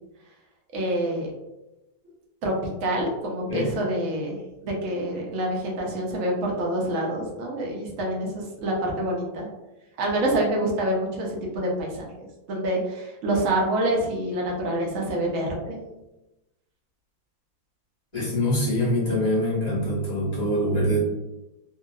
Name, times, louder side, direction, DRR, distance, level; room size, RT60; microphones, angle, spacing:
voice 1, 0.7-1.3 2.4-2.5 2.8-4.3 4.6-9.5 10.0-12.1 12.5-15.8, right 1 dB, 65° right, -2 dB, 0.8 m, -26 dB
voice 2, 18.1-21.0, equal, 30° left, -8 dB, 0.7 m, -24 dB
2.8 x 2.7 x 2.3 m, 0.98 s
omnidirectional pair, 2.1 m